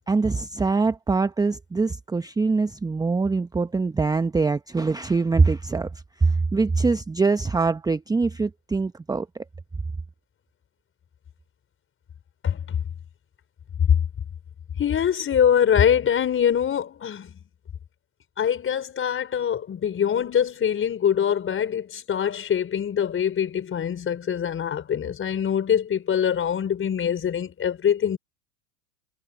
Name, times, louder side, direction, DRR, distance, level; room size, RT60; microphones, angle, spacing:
voice 1, 0.1-5.9 6.2-9.3, right 4 dB, 10° right, 0.9 m, -23 dB
voice 2, 12.4-12.8 14.8-17.3 18.4-28.2, left 8 dB, 25° left, 4.8 m, -23 dB
hypercardioid pair, 95°, 46 cm